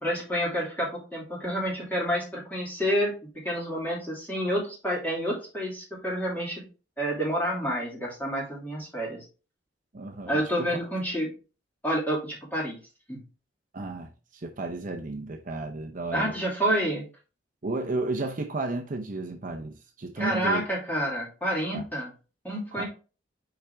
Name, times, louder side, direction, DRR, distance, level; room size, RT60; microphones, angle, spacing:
voice 1, 0.0-6.6 7.0-9.2 10.3-11.3 11.8-12.8 13.1-13.2 16.1-17.1 20.2-22.1 22.4-22.8, equal, 10° left, 2.6 m, -29 dB
voice 2, 9.9-10.8 13.7-16.3 17.6-20.6 21.7-21.8 22.8-22.9, right 2 dB, 45° right, 0.7 m, -33 dB
5.8 x 5.0 x 3.5 m
head